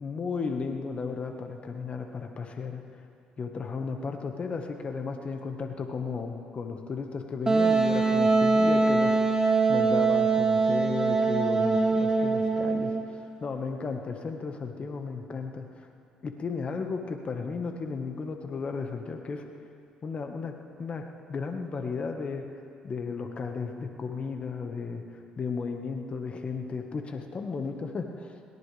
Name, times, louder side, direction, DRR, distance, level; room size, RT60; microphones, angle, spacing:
voice 1, 0.0-2.8 3.4-9.2 9.7-15.9 16.2-19.4 20.0-22.5 22.8-28.4, left 4 dB, 40° left, 4 dB, 1.6 m, -34 dB
Wind instrument woodwind instrument, 7.5-13.0, right 3 dB, 25° right, 2.1 m, -23 dB
22.0 x 18.0 x 3.5 m, 2.5 s
supercardioid pair, 70°, 3 cm